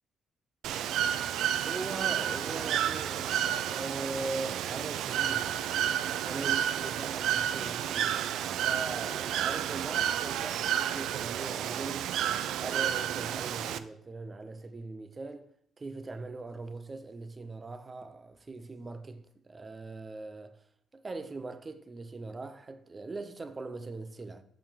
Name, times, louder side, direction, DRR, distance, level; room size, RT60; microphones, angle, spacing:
Bird / Water, 0.6-13.8, right 10 dB, 80° right, 0.3 m, -31 dB
voice 1, 1.6-5.5 6.2-8.2 8.6-12.1 12.6-15.5 15.8-20.6 20.9-24.4, right 3 dB, 30° right, 0.6 m, -40 dB
6.8 x 5.6 x 3.5 m
cardioid pair, 90°, 0 cm